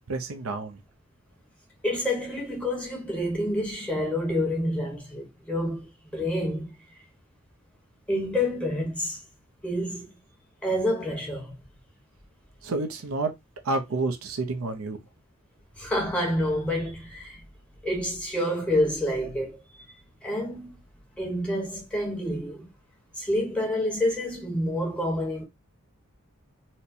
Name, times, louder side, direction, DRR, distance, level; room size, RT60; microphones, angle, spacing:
voice 1, 0.1-0.8 12.6-13.3 13.6-15.0, right 3 dB, 75° right, 0.6 m, -29 dB
voice 2, 1.8-6.7 8.1-9.2 9.6-10.1 10.6-11.5 15.8-17.4 17.8-19.6 20.2-20.8 21.2-22.7 23.2-25.4, left 1 dB, 5° left, 1.1 m, -28 dB
4.2 x 2.1 x 2.7 m
head